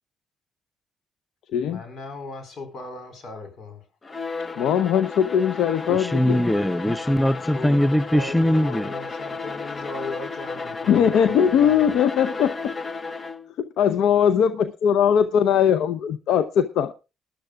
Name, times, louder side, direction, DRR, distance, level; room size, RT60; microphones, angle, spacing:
voice 1, 1.7-3.8 7.5-11.9, left 3 dB, 60° left, 4.5 m, -38 dB
Bowed string instrument, 4.0-13.5, left 4 dB, 35° left, 0.9 m, -33 dB
voice 2, 4.6-6.4 10.9-12.7 13.6-16.9, left 8 dB, 80° left, 0.7 m, -20 dB
voice 3, 5.9-8.9, left 1 dB, 5° left, 0.6 m, -21 dB
20.0 x 11.5 x 2.3 m
supercardioid pair, 60°, 0 cm